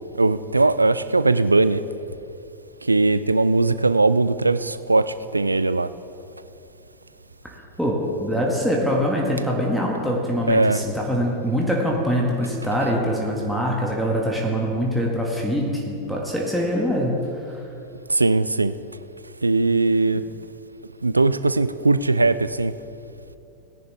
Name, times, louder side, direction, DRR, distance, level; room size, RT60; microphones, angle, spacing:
voice 1, 0.2-1.8 2.8-5.9 10.5-10.8 18.1-18.7 19.4-20.2 21.0-22.7, right 3 dB, 80° right, 0.3 m, -19 dB
voice 2, 7.8-17.1 17.5-17.7, equal, ahead, 1.6 m, -23 dB
17.5 x 10.5 x 3.4 m
figure-of-eight pair, 90°, 0 cm